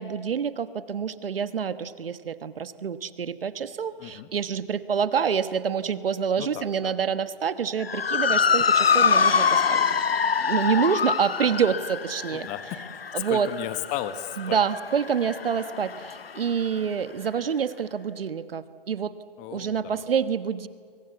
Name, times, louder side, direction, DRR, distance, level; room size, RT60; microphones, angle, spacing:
voice 1, 0.0-9.8 10.4-12.5 13.1-13.5 14.4-19.1 19.5-20.7, right 7 dB, 75° right, 12 dB, 1.4 m, -27 dB
voice 2, 6.4-6.9 12.3-12.8 13.1-14.6 19.4-20.0, left 12 dB, 25° left, 11 dB, 1.3 m, -35 dB
Motor vehicle (road) / Siren, 7.8-16.4, left 6 dB, 90° left, 0.9 m, -25 dB
29.5 x 23.0 x 8.3 m, 2.1 s
hypercardioid pair, 135°, 29 cm